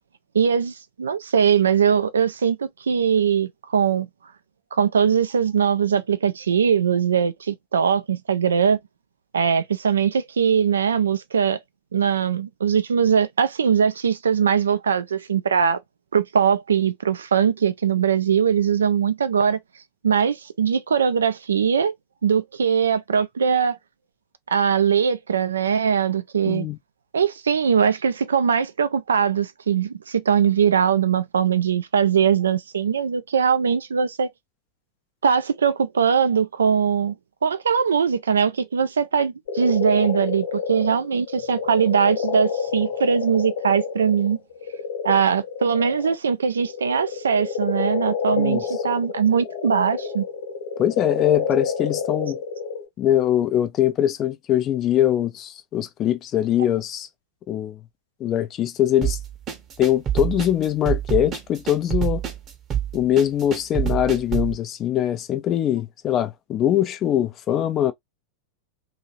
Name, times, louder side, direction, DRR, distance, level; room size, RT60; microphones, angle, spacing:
voice 1, 0.3-4.1 4.7-8.8 9.3-11.6 11.9-15.8 16.1-19.6 20.0-21.9 22.2-23.8 24.5-26.7 27.1-34.3 35.2-37.1 37.4-44.4 45.0-50.2, right 7 dB, 70° right, 0.4 m, -21 dB
voice 2, 26.5-26.8 48.4-48.6 50.8-52.4 53.0-57.1 57.5-57.8 58.2-59.2 59.8-62.2 62.9-67.9, left 11 dB, 30° left, 0.4 m, -22 dB
sound 1, 39.5-46.2 46.5-52.9, left 6 dB, 60° left, 1.3 m, -29 dB
sound 2, 59.0-64.5, right 10 dB, 30° right, 0.9 m, -26 dB
2.7 x 2.7 x 2.9 m
figure-of-eight pair, 90°, 0 cm